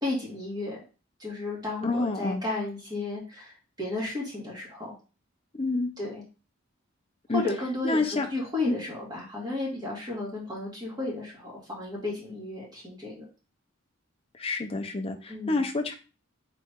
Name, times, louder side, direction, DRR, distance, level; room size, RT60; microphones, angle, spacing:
voice 1, 0.0-0.8 1.2-4.9 6.0-6.2 7.3-13.2 15.3-15.6, left 2 dB, 20° right, -4 dB, 1.9 m, -33 dB
voice 2, 1.8-2.4 5.6-5.9 7.3-7.4 7.8-8.3 8.7-8.8 14.4-15.9, left 3 dB, 30° left, 3 dB, 0.6 m, -28 dB
4.2 x 3.2 x 3.6 m, 0.34 s
head